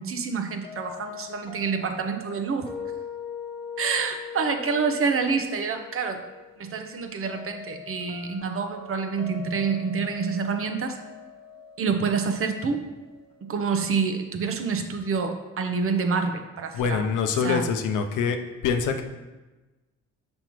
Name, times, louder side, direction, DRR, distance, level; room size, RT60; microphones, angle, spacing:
voice 1, 0.0-2.7 3.8-6.2 6.6-11.0 11.8-12.8 13.4-17.1 17.3-17.6, right 5 dB, 45° right, 6 dB, 0.8 m, -27 dB
sound 1, 0.6-13.5, left 6 dB, 20° left, 1.1 m, -42 dB
voice 2, 16.7-18.4 18.6-19.0, left 6 dB, 85° left, 6 dB, 0.6 m, -24 dB
5.9 x 5.2 x 3.1 m, 1.2 s
cardioid pair, 90°, 30 cm